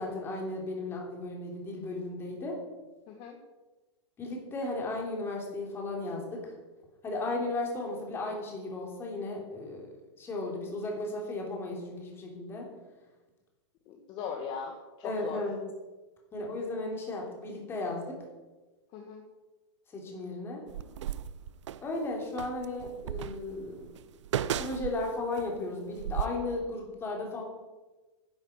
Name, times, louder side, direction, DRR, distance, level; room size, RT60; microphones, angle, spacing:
voice 1, 0.0-2.6 4.2-6.5 7.0-9.9 10.2-12.7 15.0-15.6 16.3-18.2 19.9-20.6 21.8-23.9 24.6-27.4, left 2 dB, 15° left, 0 dB, 3.1 m, -35 dB
voice 2, 13.9-15.4 18.9-19.2, left 6 dB, 30° left, 2 dB, 1.5 m, -39 dB
sound 1, 20.7-21.9 22.4-25.5 25.9-26.3, right 10 dB, 80° right, 0.7 m, -35 dB
10.5 x 8.7 x 8.2 m, 1.2 s
supercardioid pair, 160°, 15 cm